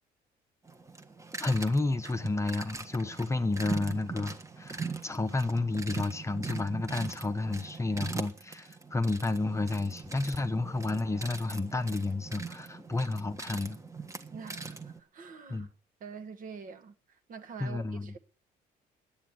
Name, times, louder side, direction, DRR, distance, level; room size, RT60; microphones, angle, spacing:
sound 1, 0.7-15.0, right 4 dB, 20° right, 1.4 m, -41 dB
voice 1, 1.4-13.8 15.5-15.7 17.6-18.1, left 2 dB, 15° left, 0.9 m, -31 dB
voice 2, 14.3-15.7 16.0-18.2, right 5 dB, 55° right, 1.5 m, -45 dB
9.8 x 8.8 x 9.2 m
cardioid pair, 110°, 17 cm